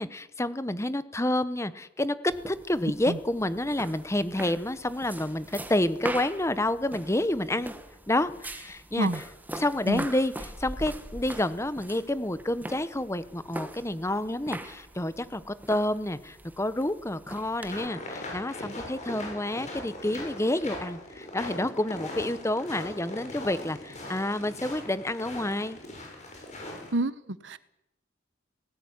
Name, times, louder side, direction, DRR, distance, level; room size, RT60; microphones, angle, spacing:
voice 1, 0.0-7.7 8.1-9.2 9.5-25.8, left 1 dB, 15° left, 14 dB, 1.0 m, -29 dB
sound 1, 2.3-17.9, right 1 dB, 10° right, 1.5 m, -42 dB
sound 2, 17.7-26.9, left 1 dB, 40° left, 7.2 m, -40 dB
voice 2, 26.9-27.6, right 2 dB, 65° right, 16 dB, 1.1 m, -28 dB
18.0 x 17.5 x 9.7 m, 0.85 s
head